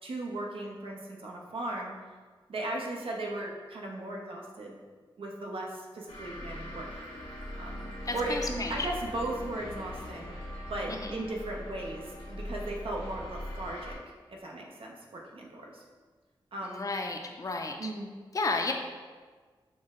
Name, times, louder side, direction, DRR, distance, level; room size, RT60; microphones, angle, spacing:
voice 1, 0.0-1.9 2.5-4.8 5.2-6.9 7.6-10.4 10.7-14.0 14.3-15.8 16.5-16.9 17.8-18.1, right 1 dB, 80° right, 0 dB, 0.7 m, -37 dB
sound 1, 6.1-14.0, left 1 dB, 85° left, 1.0 m, -41 dB
voice 2, 8.1-8.9 10.9-11.2 16.6-17.9 18.3-18.7, left 3 dB, 40° left, 3 dB, 0.4 m, -33 dB
6.1 x 2.1 x 3.6 m, 1.5 s
wide cardioid pair, 100°, 9 cm